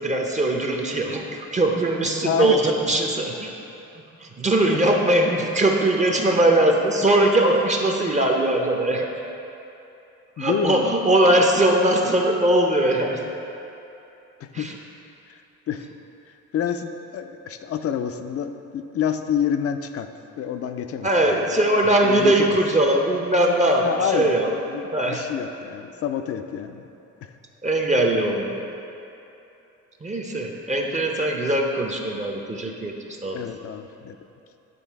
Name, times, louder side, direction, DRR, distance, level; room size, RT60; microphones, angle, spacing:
voice 1, 0.0-3.5 4.2-9.1 10.4-13.2 14.5-14.8 21.0-25.2 27.6-28.6 30.0-33.4, right 1 dB, 25° right, 1 dB, 0.6 m, -21 dB
voice 2, 2.2-2.6 10.4-10.9 14.4-14.7 15.3-15.4 15.7-15.8 16.5-20.1 20.4-21.6 22.0-22.6 23.8-26.9 27.2-27.3 33.3-34.2, left 8 dB, 50° left, 8 dB, 0.5 m, -28 dB
9.3 x 3.3 x 4.5 m, 2.8 s
cardioid pair, 90°, 30 cm